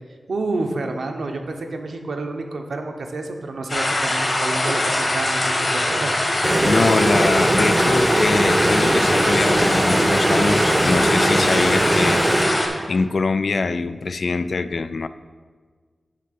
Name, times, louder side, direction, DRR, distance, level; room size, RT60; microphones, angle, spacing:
voice 1, 0.3-6.1, right 2 dB, 80° right, 4 dB, 0.8 m, -29 dB
sound 1, 3.7-12.7, left 1 dB, 45° left, 1.6 m, -22 dB
sound 2, 6.4-13.1, right 1 dB, 25° right, 0.3 m, -20 dB
voice 2, 6.6-12.2 12.9-15.1, left 4 dB, 65° left, 12 dB, 0.3 m, -23 dB
9.8 x 3.4 x 6.7 m, 1.5 s
wide cardioid pair, 85°, 0 cm